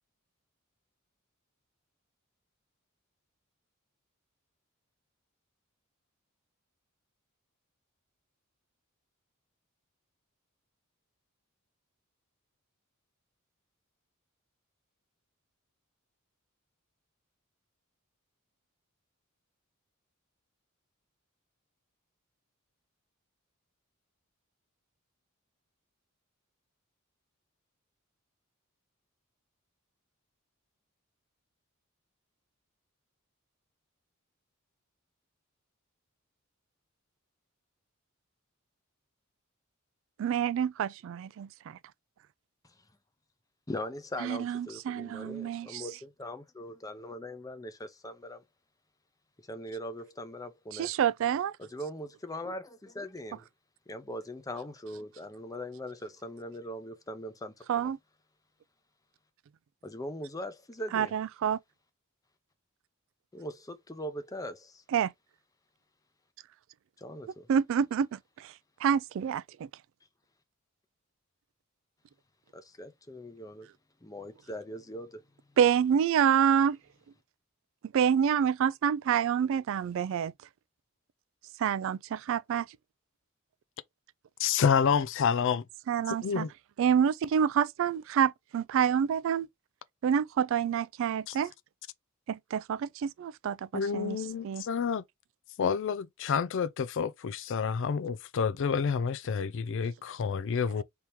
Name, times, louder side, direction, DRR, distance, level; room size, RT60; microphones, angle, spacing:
voice 1, 40.2-41.8 44.2-45.8 50.7-51.6 57.7-58.0 60.9-61.6 64.9-65.1 67.5-68.5 68.8-69.7 75.6-76.8 77.9-80.3 81.6-82.7 85.9-86.5 86.8-89.5 90.0-91.5 92.3-94.2 94.4-94.7, right 8 dB, 65° right, 0.3 m, -27 dB
voice 2, 43.7-48.4 49.4-50.9 51.6-53.5 53.9-57.9 59.8-61.1 63.3-64.8 67.0-67.5 72.5-73.7 74.0-75.2, equal, 15° left, 0.6 m, -41 dB
voice 3, 84.4-85.6 86.2-86.5 91.3-91.4 93.7-95.0 95.6-100.8, left 6 dB, 60° left, 0.4 m, -29 dB
3.5 x 2.9 x 4.5 m
head